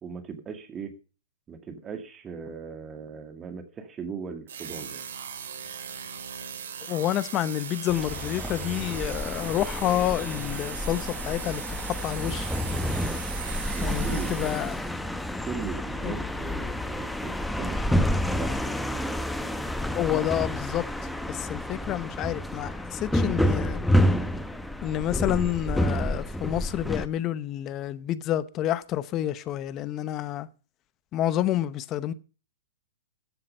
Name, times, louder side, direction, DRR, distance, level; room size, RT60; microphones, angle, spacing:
voice 1, 0.0-0.9 1.5-5.1 13.7-14.4 15.5-18.5, right 6 dB, 20° right, 2.2 m, -38 dB
sound 1, 4.5-15.0, right 7 dB, 70° right, 3.1 m, -39 dB
voice 2, 6.9-12.5 13.8-14.8 16.0-16.2 19.9-20.8 21.3-23.8 24.8-30.5 31.1-32.1, left 12 dB, 30° left, 0.8 m, -29 dB
sound 2, 7.9-27.1, equal, 5° left, 0.9 m, -29 dB
14.0 x 7.6 x 5.5 m
hypercardioid pair, 135°, 0 cm